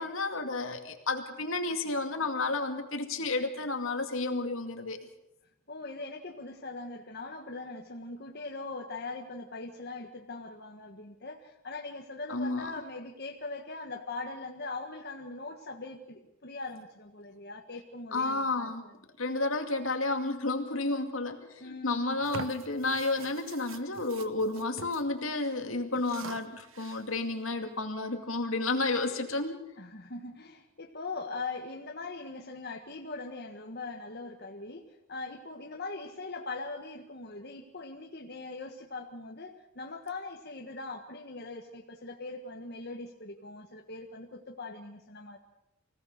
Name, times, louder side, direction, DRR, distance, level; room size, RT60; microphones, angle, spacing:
voice 1, 0.0-5.0 12.3-12.7 18.1-18.8 19.2-29.6, left 3 dB, 75° left, 5 dB, 2.3 m, -31 dB
voice 2, 5.7-19.0 21.6-22.2 29.8-45.4, left 3 dB, 50° left, 1 dB, 1.6 m, -41 dB
sound 1, 22.2-25.0 25.3-25.5 25.9-27.2, right 4 dB, 70° right, 1.2 m, -45 dB
24.5 x 17.5 x 6.7 m, 0.90 s
head